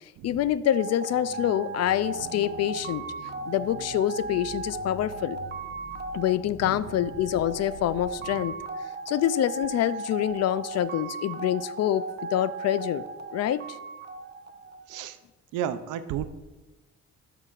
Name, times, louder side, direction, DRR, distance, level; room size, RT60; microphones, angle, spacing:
voice 1, 0.2-3.1 3.5-5.4 6.1-8.5 9.1-13.0 13.3-13.8, left 11 dB, 60° left, 16 dB, 0.4 m, -26 dB
sound 1, 0.6-15.1, right 4 dB, 35° right, 0.6 m, -37 dB
sound 2, 1.1-8.1, left 5 dB, 75° left, 0.9 m, -46 dB
voice 2, 15.5-16.2, right 10 dB, 90° right, 12 dB, 0.5 m, -32 dB
12.5 x 5.7 x 2.4 m, 1.1 s
cardioid pair, 90°, 30 cm